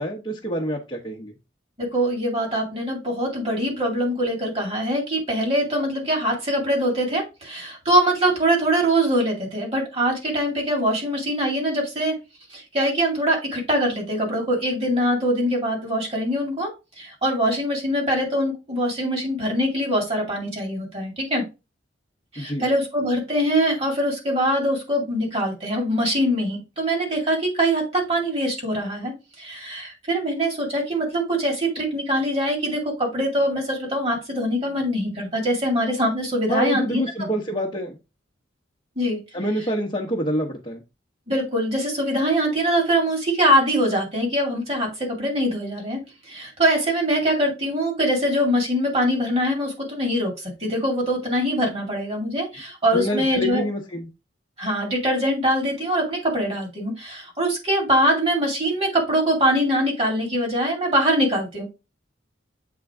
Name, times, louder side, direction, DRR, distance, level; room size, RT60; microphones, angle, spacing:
voice 1, 0.0-1.3 22.4-22.7 36.5-38.0 39.3-40.8 52.9-54.1, equal, 25° left, -2 dB, 0.9 m, -26 dB
voice 2, 1.8-12.2 12.5-21.4 22.3-37.0 39.0-39.2 41.3-46.0 46.3-53.6 54.6-61.6, equal, 30° right, 0 dB, 2.2 m, -23 dB
7.7 x 3.8 x 3.5 m, 0.27 s
head